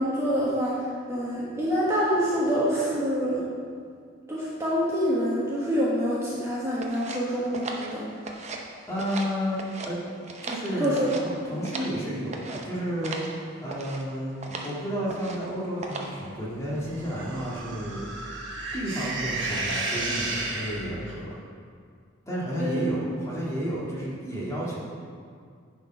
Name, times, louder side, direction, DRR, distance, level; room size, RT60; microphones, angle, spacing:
voice 1, 0.0-3.4 4.3-8.0 10.8-11.1 11.5-11.7 22.6-22.8, equal, 15° right, -8 dB, 1.3 m, -26 dB
sound 1, 6.8-8.7 8.9-9.9 10.2-12.0 12.3-12.7 13.0-13.3 13.7-14.0 14.4-14.7 15.1-15.5 15.8-16.2, right 3 dB, 35° right, 0.7 m, -37 dB
voice 2, 8.4-10.0 10.4-11.0 11.4-13.2 13.6-18.0 18.7-21.3 22.3-24.8, equal, 15° left, -7 dB, 1.8 m, -31 dB
sound 2, 16.9-21.2, right 2 dB, 65° right, 1.1 m, -32 dB
9.8 x 4.5 x 5.3 m, 2.1 s
head